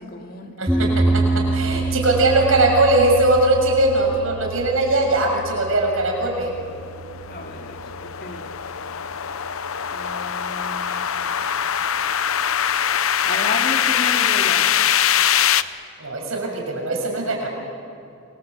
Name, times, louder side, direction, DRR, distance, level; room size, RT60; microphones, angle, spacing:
voice 1, 0.0-1.3 7.3-7.7 8.2-8.5 8.9-9.0 9.9-11.1 13.2-14.7, left 2 dB, 45° left, 3 dB, 2.4 m, -33 dB
voice 2, 0.6-6.5 16.0-17.5, right 2 dB, 80° right, 1 dB, 6.5 m, -20 dB
sound 1, 0.7-10.9, right 3 dB, 5° right, 2.4 m, -27 dB
sound 2, 6.5-15.6, left 9 dB, 85° left, 0.8 m, -22 dB
28.0 x 23.5 x 8.3 m, 2.5 s
head